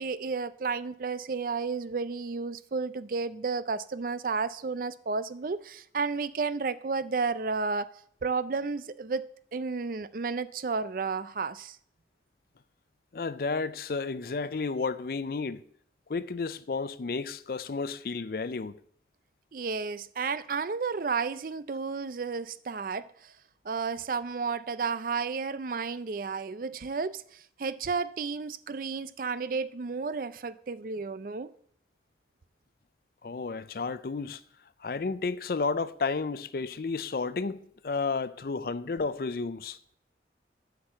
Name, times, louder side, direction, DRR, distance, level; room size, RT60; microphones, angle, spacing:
voice 1, 0.0-7.9 8.2-11.8 19.5-23.3 23.6-31.5, right 4 dB, 50° right, 0.4 m, -32 dB
voice 2, 13.1-15.6 16.1-18.8 33.2-34.4 34.8-39.8, left 4 dB, 55° left, 0.5 m, -32 dB
8.2 x 6.2 x 7.5 m
head